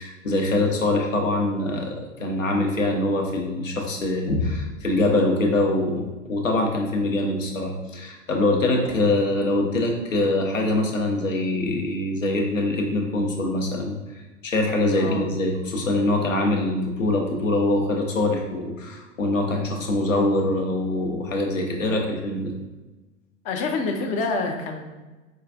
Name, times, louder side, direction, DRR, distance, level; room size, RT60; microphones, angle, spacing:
voice 1, 0.0-14.0 14.4-22.5, left 2 dB, 90° left, 2 dB, 0.7 m, -24 dB
voice 2, 14.9-15.3 23.4-25.0, left 3 dB, 20° left, 4 dB, 0.3 m, -27 dB
4.4 x 2.4 x 2.5 m, 1.2 s
figure-of-eight pair, 90°, 38 cm